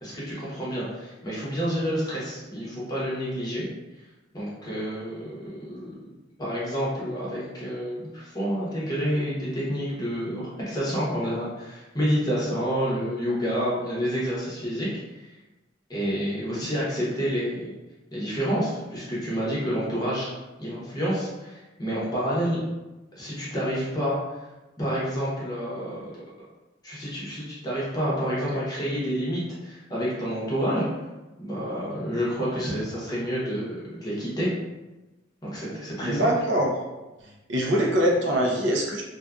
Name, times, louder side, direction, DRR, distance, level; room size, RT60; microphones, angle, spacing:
voice 1, 0.0-3.7 4.3-5.9 6.4-14.9 15.1-15.3 15.9-17.7 18.1-20.3 20.6-22.6 23.1-24.2 24.8-26.1 26.8-30.9 31.4-34.5 35.4-36.3, equal, 20° left, -7 dB, 0.7 m, -29 dB
voice 2, 36.0-36.7 37.5-39.0, equal, 75° right, -1 dB, 0.5 m, -23 dB
2.6 x 2.3 x 2.3 m, 1.1 s
head